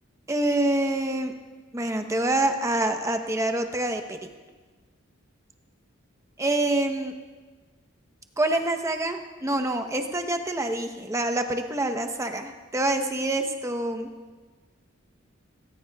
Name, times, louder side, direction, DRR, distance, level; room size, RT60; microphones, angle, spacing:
voice 1, 0.3-1.3 1.7-4.2 6.4-7.1 8.4-14.1, right 1 dB, 15° right, 5 dB, 0.8 m, -26 dB
19.0 x 17.5 x 2.3 m, 1.3 s
head